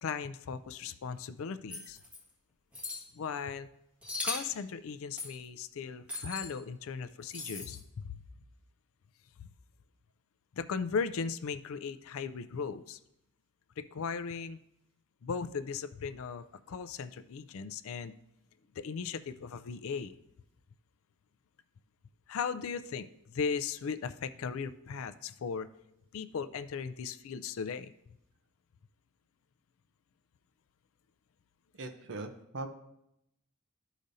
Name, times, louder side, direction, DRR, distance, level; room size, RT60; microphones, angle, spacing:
voice 1, 0.0-2.0 3.1-3.7 4.2-8.1 9.4-9.5 10.5-13.0 13.8-14.6 15.2-18.1 18.8-20.1 22.3-25.7 26.1-27.9, left 6 dB, 70° left, 12 dB, 0.4 m, -37 dB
sound 1, 1.7-2.2 2.7-3.0 4.0-4.6 5.2-5.4 6.1-6.5 7.3-7.8, left 3 dB, 5° right, 1.6 m, -38 dB
voice 2, 31.7-32.7, right 2 dB, 60° right, 6 dB, 0.7 m, -40 dB
13.0 x 5.0 x 2.7 m, 0.80 s
head